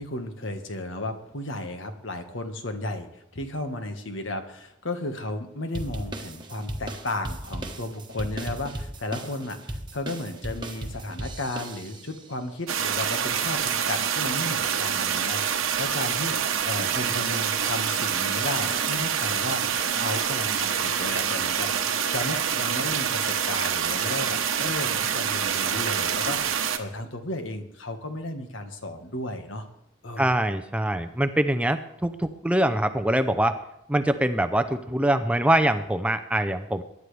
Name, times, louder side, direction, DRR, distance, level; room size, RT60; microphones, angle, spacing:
voice 1, 0.0-29.7 30.0-30.3, left 2 dB, 70° left, 6 dB, 1.5 m, -34 dB
sound 1, 5.7-12.2, right 1 dB, 20° right, 1.2 m, -36 dB
sound 2, 12.7-26.8, right 7 dB, 90° right, 1.1 m, -26 dB
voice 2, 30.2-33.6 33.9-36.8, right 1 dB, 5° right, 9 dB, 0.5 m, -24 dB
23.0 x 11.0 x 3.4 m, 0.78 s
head